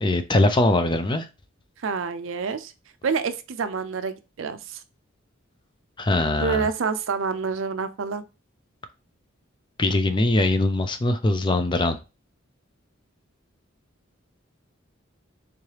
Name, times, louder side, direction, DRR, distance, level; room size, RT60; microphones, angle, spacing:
voice 1, 0.0-1.3 6.0-6.7 9.8-12.0, left 2 dB, 25° left, 9 dB, 0.4 m, -21 dB
voice 2, 1.8-2.7 3.0-4.8 6.4-8.2, right 5 dB, 70° right, 11 dB, 0.5 m, -27 dB
3.6 x 3.2 x 2.9 m, 0.28 s
head